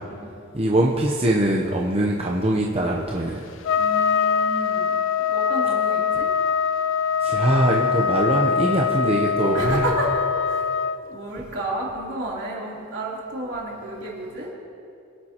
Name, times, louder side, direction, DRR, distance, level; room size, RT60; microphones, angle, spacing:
voice 1, 0.5-3.4 7.2-9.8, right 1 dB, 30° right, -2 dB, 0.8 m, -22 dB
Trumpet, 3.6-11.0, left 6 dB, 70° left, 0.4 m, -23 dB
voice 2, 3.7-6.3 9.5-10.7 11.1-14.5, right 1 dB, 65° right, -5 dB, 3.5 m, -31 dB
24.0 x 10.5 x 3.0 m, 2.6 s
head